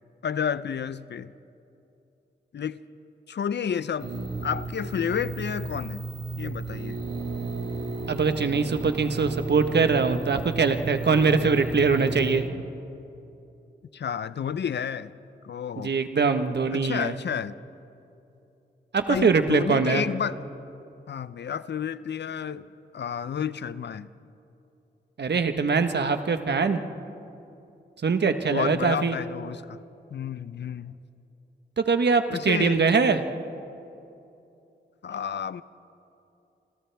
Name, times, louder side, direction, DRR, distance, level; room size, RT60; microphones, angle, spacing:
voice 1, 0.2-1.3 2.5-2.8 3.3-4.1 4.4-6.0 6.4-7.0 13.9-15.1 15.4-15.9 16.7-17.5 19.1-20.4 21.1-24.1 28.5-29.8 30.1-31.0 32.3-32.8 35.0-35.6, left 7 dB, 70° left, 16 dB, 0.6 m, -31 dB
sound 1, 4.0-12.4, right 3 dB, 85° right, 7.1 m, -34 dB
voice 2, 8.1-12.4 15.8-17.2 18.9-20.0 25.2-26.8 28.0-29.2 31.8-33.2, right 5 dB, 65° right, 8 dB, 1.3 m, -23 dB
29.0 x 27.0 x 3.5 m, 2.8 s
cardioid pair, 45°, 19 cm